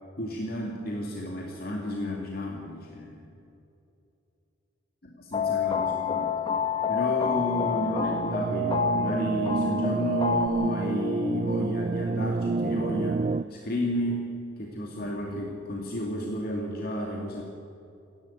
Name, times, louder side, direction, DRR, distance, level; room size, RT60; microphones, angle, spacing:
voice 1, 0.2-3.3 5.1-6.3 6.9-17.4, equal, 55° left, -1 dB, 2.4 m, -32 dB
sound 1, 5.3-10.5, left 4 dB, 25° left, 1.5 m, -27 dB
sound 2, 7.4-13.4, right 3 dB, 35° right, 0.4 m, -29 dB
28.0 x 11.5 x 8.7 m, 2.7 s
head